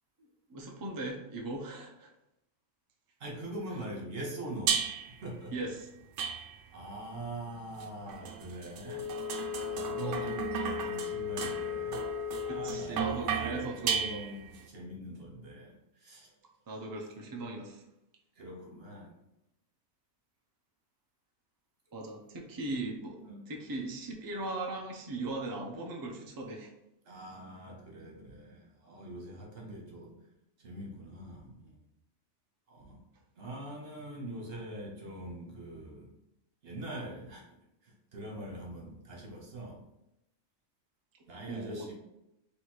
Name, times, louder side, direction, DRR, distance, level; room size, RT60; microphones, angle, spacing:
voice 1, 0.5-2.1 5.5-5.9 10.0-10.3 12.4-14.2 16.7-17.8 21.9-23.2 23.5-26.7 41.5-41.9, right 2 dB, 25° right, 0 dB, 0.5 m, -39 dB
voice 2, 3.2-4.9 5.2-5.5 6.7-9.2 9.7-12.0 12.4-16.3 18.3-19.1 23.2-23.4 27.0-30.2 30.6-31.8 32.7-33.0 33.3-36.1 36.6-37.5 37.8-39.9 41.3-41.9, right 1 dB, 55° right, -1 dB, 1.3 m, -43 dB
sound 1, 4.7-5.2 6.2-6.8 7.8-14.6, right 7 dB, 80° right, 0.9 m, -35 dB
Wind instrument woodwind instrument, 8.8-13.0, left 9 dB, 65° left, 1.7 m, -37 dB
3.4 x 3.1 x 4.4 m, 0.87 s
omnidirectional pair, 1.2 m